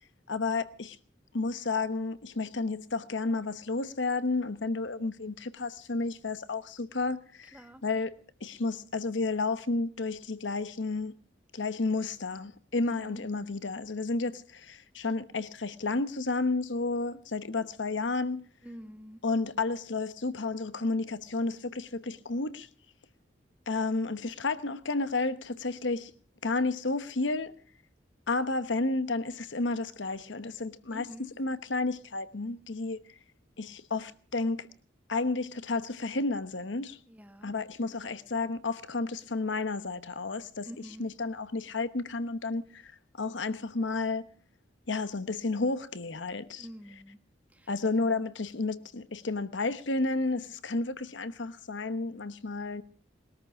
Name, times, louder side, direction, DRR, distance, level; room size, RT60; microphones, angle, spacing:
voice 1, 0.3-1.0 1.3-11.1 11.5-18.4 19.2-22.7 23.7-26.1 26.4-27.5 28.3-33.0 33.6-34.7 35.1-37.0 37.4-40.7 41.0-42.9 43.2-44.3 44.9-46.7 47.7-52.8, left 3 dB, 85° left, 1.1 m, -31 dB
voice 2, 7.5-7.8 12.9-13.2 18.6-19.2 30.9-31.3 37.1-37.5 40.6-41.1 46.6-47.2 47.5-48.3, equal, 10° right, 1.6 m, -47 dB
20.5 x 13.5 x 4.8 m
head